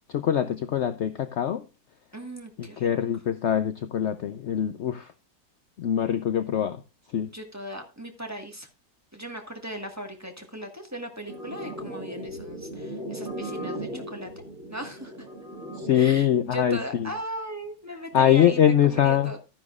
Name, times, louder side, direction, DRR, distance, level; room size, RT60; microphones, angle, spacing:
voice 1, 0.1-1.6 2.6-5.1 5.8-6.8 7.1-7.3 15.8-17.1 18.1-19.3, left 9 dB, 70° left, 0.6 m, -23 dB
voice 2, 2.1-2.9 7.3-8.7 9.1-14.4 14.7-15.3 15.9-19.4, equal, 10° right, 1.4 m, -38 dB
sound 1, 11.3-16.3, right 1 dB, 50° right, 2.2 m, -37 dB
12.5 x 10.5 x 2.4 m
omnidirectional pair, 1.9 m